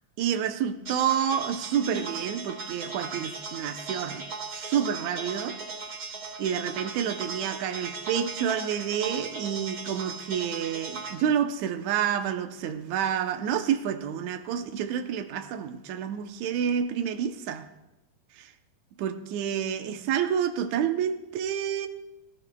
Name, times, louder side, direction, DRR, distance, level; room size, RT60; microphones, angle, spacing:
voice 1, 0.2-5.6 6.4-17.7 18.3-18.5 19.0-21.9, right 8 dB, 70° right, 1.8 m, -29 dB
sound 1, 0.9-11.1, right 4 dB, 50° right, 3.7 m, -38 dB
21.0 x 15.5 x 2.3 m
omnidirectional pair, 4.1 m